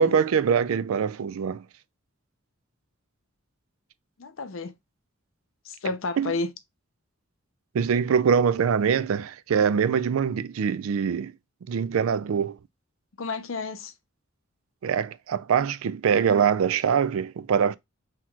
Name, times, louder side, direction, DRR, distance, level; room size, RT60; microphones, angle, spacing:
voice 1, 0.0-1.6 6.2-6.3 7.7-11.3 11.7-12.6 14.8-17.8, right 7 dB, 85° right, 0.4 m, -23 dB
voice 2, 4.2-4.7 5.6-6.5 13.2-13.9, left 3 dB, 75° left, 0.6 m, -31 dB
5.9 x 2.9 x 2.3 m
head